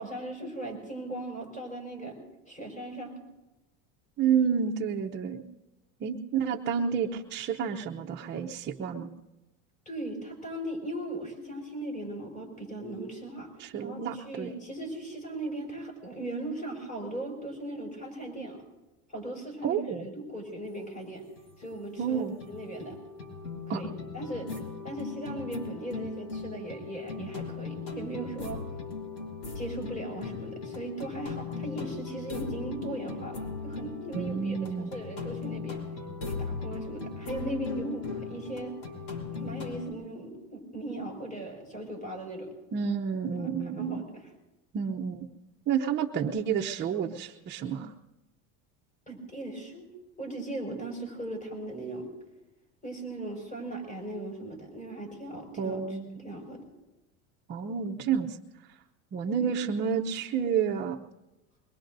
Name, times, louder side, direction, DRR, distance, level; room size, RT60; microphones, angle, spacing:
voice 1, 0.0-2.2 2.5-3.1 9.9-13.5 13.8-18.6 19.1-21.2 21.6-23.0 23.7-24.5 24.8-28.6 29.5-35.8 36.4-38.7 39.3-42.5 43.3-44.3 49.1-49.9 50.2-52.1 52.8-55.8 56.2-56.6 59.4-59.5, right 1 dB, 20° left, 0 dB, 5.9 m, -38 dB
voice 2, 4.2-5.4 6.0-9.2 13.6-14.5 19.6-20.1 22.0-22.3 23.7-23.8 34.1-34.9 42.7-44.0 44.7-45.3 45.7-47.9 55.6-56.2 57.5-58.4 59.1-61.0, right 7 dB, 30° right, -1 dB, 0.7 m, -30 dB
sound 1, 21.0-21.1 21.4-39.9, left 4 dB, 50° left, 3.6 m, -38 dB
23.0 x 21.0 x 2.6 m, 1.0 s
cardioid pair, 135°, 35 cm